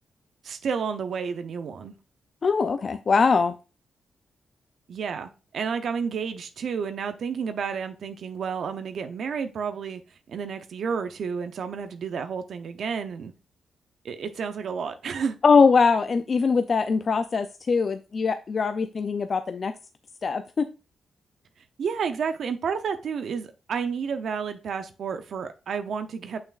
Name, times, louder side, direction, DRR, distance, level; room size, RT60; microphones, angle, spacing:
voice 1, 0.4-1.9 4.9-10.0 10.3-13.3 14.0-15.4 21.8-26.4, right 6 dB, 70° right, 0.6 m, -31 dB
voice 2, 2.4-3.5 15.4-19.7 20.2-20.7, left 5 dB, 50° left, 0.5 m, -22 dB
6.6 x 5.9 x 2.4 m
cardioid pair, 60°, 0 cm